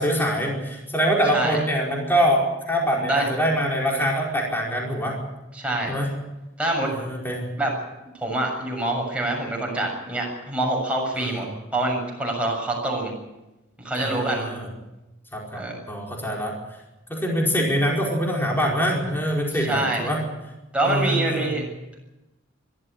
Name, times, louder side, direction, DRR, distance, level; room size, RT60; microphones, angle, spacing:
voice 1, 0.0-5.2 5.9-6.1 6.8-7.5 11.1-11.4 14.0-14.7 15.3-16.5 17.1-20.2 20.8-21.5, equal, 10° left, -1 dB, 4.8 m, -24 dB
voice 2, 2.9-3.2 5.5-6.0 6.6-6.9 7.6-7.7 8.1-11.5 11.7-13.1 13.8-14.5 15.5-15.8 19.5-20.1 20.7-21.6, right 2 dB, 5° right, -1 dB, 7.1 m, -25 dB
22.0 x 14.0 x 9.7 m, 1.0 s
head